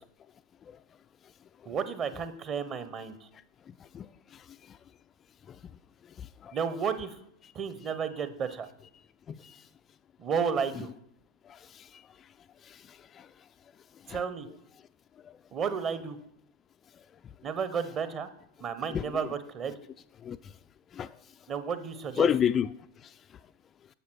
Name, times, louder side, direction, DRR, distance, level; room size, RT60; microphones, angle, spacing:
voice 1, 1.7-3.2 6.5-7.1 7.5-8.7 10.2-10.9 14.1-14.5 15.5-16.2 17.4-18.3 18.6-19.7 21.5-22.3, right 6 dB, 30° right, 1.0 m, -32 dB
voice 2, 3.9-4.8 5.5-5.6 6.2-6.6 7.4-7.5 9.3-9.7 11.5-12.0 12.6-13.3 14.1-14.2 15.2-15.3 18.9-19.0 20.2-20.5 20.9-21.1 22.2-22.7 23.0-23.1, left 8 dB, 25° left, 0.3 m, -32 dB
11.0 x 7.3 x 6.2 m
figure-of-eight pair, 90°, 0 cm